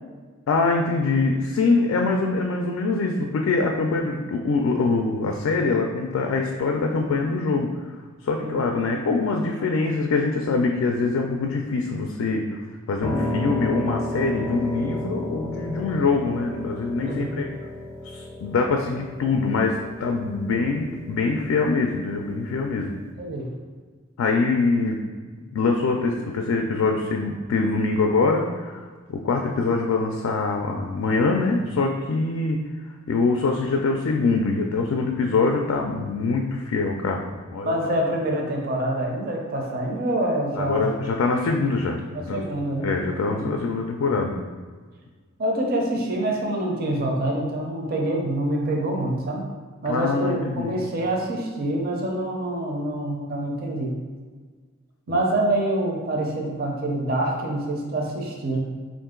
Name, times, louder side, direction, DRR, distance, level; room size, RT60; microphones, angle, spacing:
voice 1, 0.5-7.7 8.2-12.6 12.9-17.5 18.0-23.0 24.2-25.0 25.5-28.8 29.1-32.6 33.1-37.8 40.6-42.4 42.8-44.4 49.9-50.8 55.1-55.2, left 3 dB, 75° left, 2 dB, 0.3 m, -24 dB
voice 2, 8.4-9.0 17.0-17.4 23.2-23.5 37.6-40.9 42.1-42.9 43.3-43.6 45.4-49.4 49.8-54.0 55.1-58.7, right 1 dB, 45° right, 0 dB, 0.5 m, -26 dB
Piano, 13.0-23.1, left 1 dB, 15° left, 0.5 m, -33 dB
3.7 x 2.5 x 3.6 m, 1.5 s
head